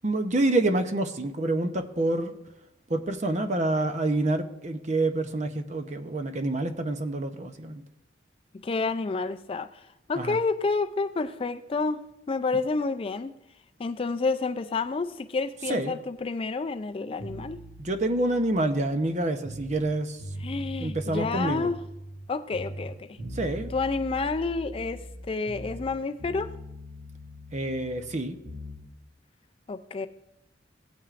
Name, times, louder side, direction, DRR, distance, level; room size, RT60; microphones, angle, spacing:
voice 1, 0.0-2.3 2.9-7.8 10.2-10.4 15.7-16.0 17.8-20.2 20.8-21.7 23.4-23.7 27.5-28.4, right 2 dB, 35° right, 0.7 m, -27 dB
voice 2, 8.6-9.8 10.1-12.0 12.3-13.3 13.8-17.6 20.4-21.8 22.3-23.2 23.7-25.0 25.3-26.6 29.7-30.1, left 4 dB, 30° left, 0.3 m, -29 dB
sound 1, 17.2-19.9 20.2-22.2 22.5-25.9 26.2-28.8, equal, 60° right, 2.5 m, -41 dB
16.5 x 8.9 x 2.5 m
head